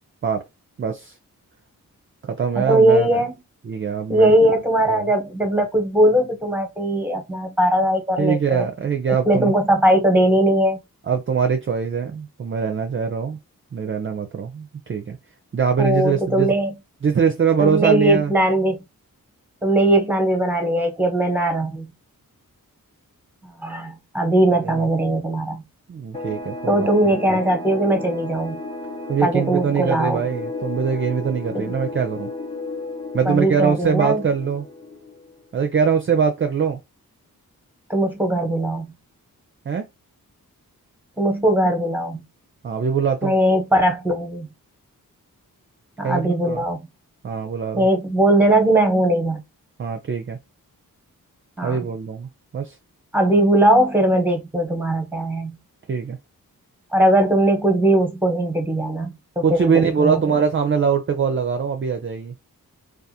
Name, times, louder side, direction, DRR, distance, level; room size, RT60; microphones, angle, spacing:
voice 1, 0.8-1.1 2.2-3.2 3.7-4.4 4.9-5.0 8.2-9.5 11.1-13.4 13.7-15.2 15.5-16.5 17.0-18.3 24.6-24.8 25.9-27.4 29.1-32.3 33.1-34.6 35.5-36.8 39.7-39.8 42.6-43.3 46.0-46.6 47.2-47.9 49.8-50.4 51.6-52.8 55.9-56.2 59.4-62.3, right 6 dB, 35° right, 0.4 m, -22 dB
voice 2, 2.6-3.3 4.1-8.7 9.1-10.8 15.8-16.7 17.6-18.8 19.6-21.9 23.4-25.6 26.7-28.6 29.2-30.2 31.5-31.6 33.2-34.2 37.9-38.9 41.2-42.2 43.2-44.5 46.0-46.9 47.8-49.4 51.6-51.9 53.1-55.6 56.9-60.4, right 1 dB, 5° right, 1.0 m, -19 dB
sound 1, 26.1-35.5, left 2 dB, 20° left, 0.9 m, -33 dB
2.4 x 2.4 x 2.7 m
cardioid pair, 55°, 35 cm